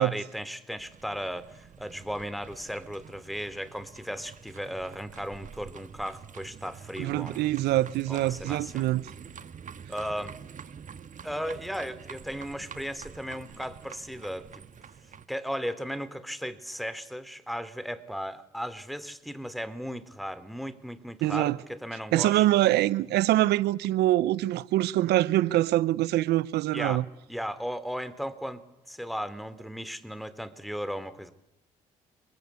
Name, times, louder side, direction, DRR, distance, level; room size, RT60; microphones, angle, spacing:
voice 1, 0.0-7.5 8.1-8.9 9.9-10.4 11.2-14.6 15.3-22.4 26.7-27.0 27.3-28.6 28.9-31.3, equal, ahead, 3.1 m, -36 dB
sound 1, 0.8-15.3, right 7 dB, 50° right, 1.8 m, -47 dB
voice 2, 7.0-9.0 21.2-21.6 22.1-27.0, right 15 dB, 80° right, 1.0 m, -24 dB
30.0 x 21.5 x 8.4 m
supercardioid pair, 60°, 17 cm